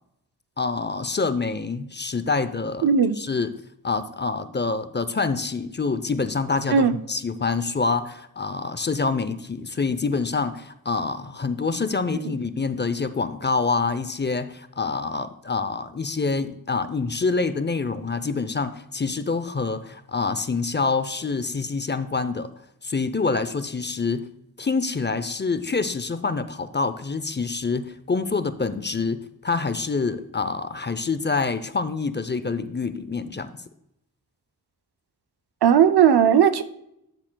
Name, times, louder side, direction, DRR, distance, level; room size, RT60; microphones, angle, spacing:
voice 1, 0.6-2.9 3.2-3.5 3.8-22.5 22.8-24.3 24.6-33.5, left 4 dB, 30° left, 12 dB, 0.5 m, -26 dB
voice 2, 2.8-3.2 6.7-6.9 35.6-36.6, right 8 dB, 90° right, 10 dB, 0.6 m, -17 dB
11.5 x 7.2 x 2.2 m, 0.79 s
wide cardioid pair, 55°, 38 cm